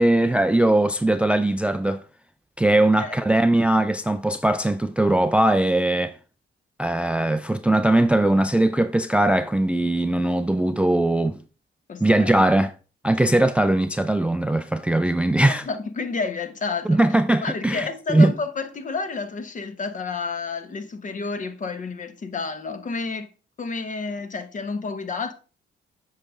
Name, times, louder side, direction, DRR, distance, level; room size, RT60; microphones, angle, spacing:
voice 1, 0.0-2.0 2.6-6.2 6.8-11.4 12.0-12.7 13.0-15.6 16.9-18.3, right 1 dB, 5° right, 0.3 m, -20 dB
voice 2, 11.9-12.3 15.5-17.0 17.4-23.3 23.6-25.3, left 4 dB, 40° left, 1.0 m, -30 dB
7.6 x 5.1 x 3.6 m
cardioid pair, 90°, 20 cm